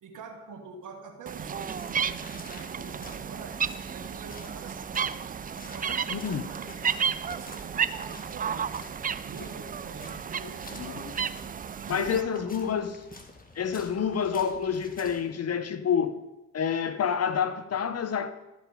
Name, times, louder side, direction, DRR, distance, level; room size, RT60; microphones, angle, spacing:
voice 1, 0.0-5.3 5.5-8.9 9.2-10.6 11.9-12.5, right 5 dB, 70° right, 1.6 m, -45 dB
sound 1, 1.3-12.2, right 7 dB, 25° right, 0.4 m, -33 dB
sound 2, 1.6-15.2, left 2 dB, 25° left, 1.7 m, -49 dB
voice 2, 6.1-6.5 10.7-11.3 11.9-13.0 13.5-16.2 16.5-18.3, left 7 dB, 50° left, 0.8 m, -28 dB
13.5 x 5.1 x 5.0 m
hypercardioid pair, 45°, 32 cm